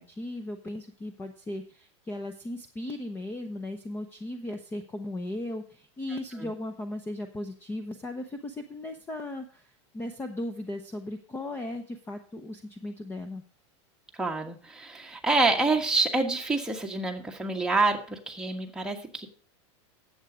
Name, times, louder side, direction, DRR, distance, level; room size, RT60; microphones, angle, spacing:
voice 1, 0.0-13.4, left 1 dB, 15° left, 8 dB, 0.8 m, -37 dB
voice 2, 14.2-19.3, right 3 dB, 5° right, 1 dB, 1.4 m, -27 dB
11.0 x 8.0 x 5.0 m, 0.43 s
supercardioid pair, 145°, 15 cm